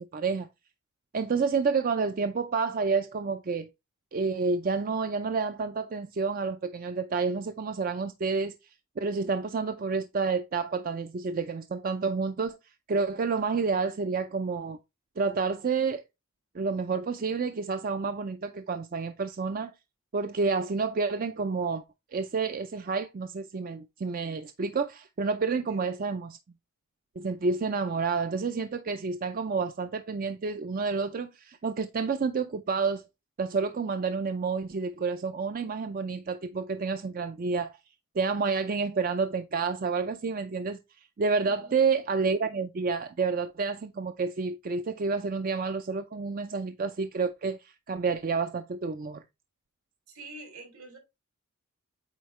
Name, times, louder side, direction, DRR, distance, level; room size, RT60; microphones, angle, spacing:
voice 1, 0.1-0.5 1.1-3.7 4.1-8.5 9.0-12.6 12.9-14.8 15.2-16.0 16.5-19.7 20.1-21.8 22.1-26.4 27.2-33.0 33.4-37.7 38.2-40.8 41.2-49.2, right 4 dB, 40° right, 0.4 m, -29 dB
voice 2, 25.5-26.0 41.4-41.8 50.1-51.0, right 3 dB, 75° right, 2.6 m, -47 dB
8.2 x 4.3 x 3.1 m
head